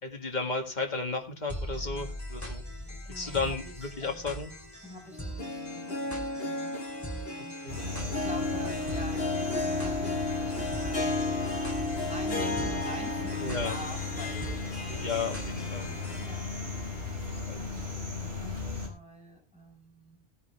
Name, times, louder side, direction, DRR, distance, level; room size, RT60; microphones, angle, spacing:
voice 1, 0.0-2.6 3.1-4.5 7.6-7.8 12.6-12.7 13.4-13.7 14.9-15.9 17.5-17.6, left 4 dB, 45° left, 3 dB, 2.1 m, -33 dB
sound 1, 1.5-16.3, equal, 15° left, 2.4 m, -42 dB
voice 2, 3.1-4.1 4.8-7.5 8.1-11.8 12.0-14.7 16.2-16.5 17.1-18.0 18.4-20.2, equal, 5° right, -1 dB, 4.8 m, -46 dB
Harp, 5.1-17.3 17.6-17.7 18.6-18.7, left 2 dB, 65° left, 1.6 m, -34 dB
sound 2, 7.7-18.9, left 4 dB, 70° right, 4.7 m, -36 dB
17.0 x 9.6 x 3.4 m, 0.33 s
omnidirectional pair, 1.1 m